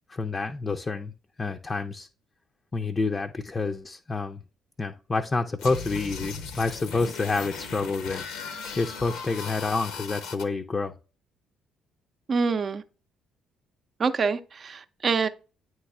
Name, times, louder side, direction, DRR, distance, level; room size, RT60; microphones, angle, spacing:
voice 1, 0.1-1.1 1.4-2.1 2.7-4.4 4.8-10.9, left 3 dB, 30° left, 0.5 m, -28 dB
sound 1, 5.6-10.4, left 5 dB, 70° left, 0.7 m, -37 dB
voice 2, 12.3-12.8 14.0-15.3, right 5 dB, 45° right, 0.6 m, -26 dB
9.2 x 3.1 x 3.5 m
hypercardioid pair, 45°, 0 cm